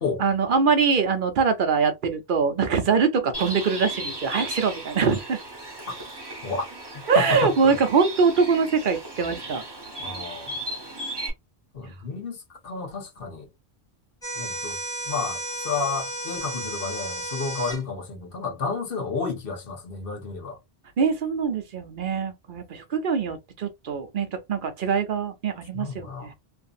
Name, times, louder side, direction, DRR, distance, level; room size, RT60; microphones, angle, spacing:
voice 1, 0.2-5.4 7.1-9.6 21.0-26.3, right 5 dB, 55° right, 0.8 m, -23 dB
Bird, 3.3-11.3, right 1 dB, 25° right, 1.0 m, -36 dB
voice 2, 7.2-7.8 10.0-10.7 11.7-12.4 12.6-13.5 14.4-14.8 15.1-20.6 25.7-26.3, left 4 dB, 60° left, 1.1 m, -31 dB
sound 1, 14.2-17.8, right 1 dB, 5° left, 1.2 m, -33 dB
2.7 x 2.5 x 2.4 m
omnidirectional pair, 1.1 m